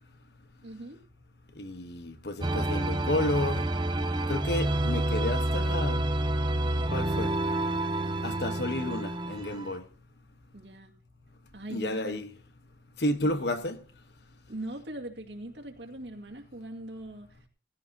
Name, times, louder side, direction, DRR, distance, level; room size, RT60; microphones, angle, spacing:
voice 1, 0.6-1.0 10.5-10.9 11.5-12.2 13.2-13.6 14.5-17.4, right 1 dB, 75° right, 2.3 m, -41 dB
voice 2, 1.6-3.7 4.3-6.0 6.9-7.3 8.2-9.8 11.7-12.3 13.0-13.8, left 1 dB, 65° left, 1.3 m, -31 dB
sound 1, 2.4-9.8, right 1 dB, 25° right, 0.8 m, -29 dB
18.0 x 15.0 x 2.9 m
head